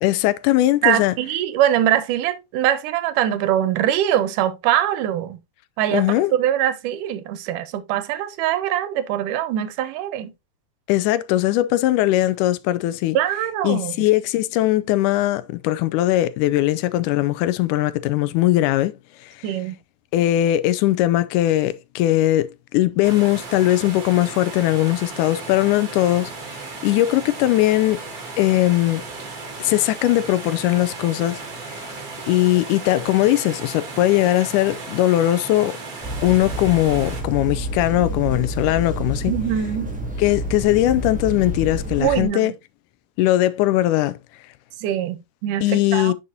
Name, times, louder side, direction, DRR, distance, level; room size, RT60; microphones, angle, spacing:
voice 1, 0.0-1.1 5.9-6.3 10.9-13.2 13.6-19.0 19.2-19.3 20.1-26.3 26.6-28.0 28.4-29.0 29.6-31.4 31.8-31.9 32.3-35.8 36.2-39.3 40.2-42.5 43.2-44.2 45.6-46.1, left 15 dB, 80° left, 2.0 m, -20 dB
voice 2, 0.8-5.4 5.8-6.1 6.3-10.3 13.1-13.9 19.4-19.8 39.3-39.9 42.0-42.5 44.8-46.1, right 11 dB, 80° right, 2.3 m, -22 dB
sound 1, 23.0-37.2, right 3 dB, 35° right, 1.7 m, -35 dB
sound 2, 36.0-42.3, equal, 5° right, 1.0 m, -29 dB
9.4 x 5.6 x 2.7 m
omnidirectional pair, 3.9 m